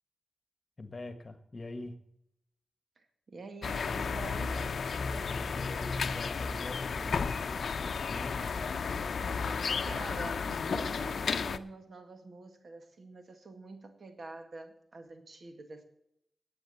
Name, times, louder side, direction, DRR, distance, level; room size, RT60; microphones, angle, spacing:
voice 1, 0.8-2.0 5.1-8.5, left 2 dB, 40° left, 10 dB, 1.6 m, -44 dB
voice 2, 3.0-4.6 9.8-15.8, right 3 dB, 65° right, 7 dB, 1.9 m, -46 dB
sound 1, 3.6-11.6, left 5 dB, 75° left, 0.6 m, -33 dB
10.5 x 8.6 x 8.3 m, 0.76 s
cardioid pair, 60°, 0 cm